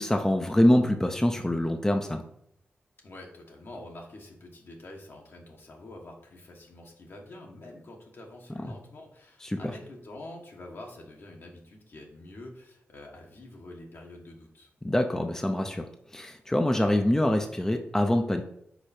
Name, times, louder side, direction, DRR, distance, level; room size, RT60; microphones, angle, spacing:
voice 1, 0.0-2.2 9.4-9.6 14.8-18.4, left 1 dB, 10° left, 4 dB, 0.6 m, -25 dB
voice 2, 3.0-14.7, left 1 dB, 65° left, 0 dB, 1.5 m, -46 dB
5.0 x 4.4 x 4.3 m, 0.72 s
cardioid pair, 55°, 4 cm